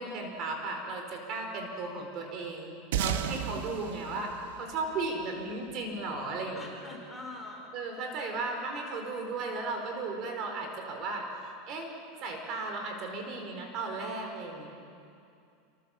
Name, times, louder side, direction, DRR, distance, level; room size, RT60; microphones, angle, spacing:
voice 1, 0.0-4.3 4.6-6.7 7.7-11.2 11.7-11.9 12.2-14.7, right 3 dB, 40° right, 3 dB, 4.9 m, -35 dB
sound 1, 2.9-5.7, right 9 dB, 85° right, 1.5 m, -34 dB
voice 2, 6.5-7.7, left 2 dB, 10° left, -1 dB, 4.9 m, -43 dB
27.5 x 25.0 x 7.4 m, 2.5 s
supercardioid pair, 155°, 0 cm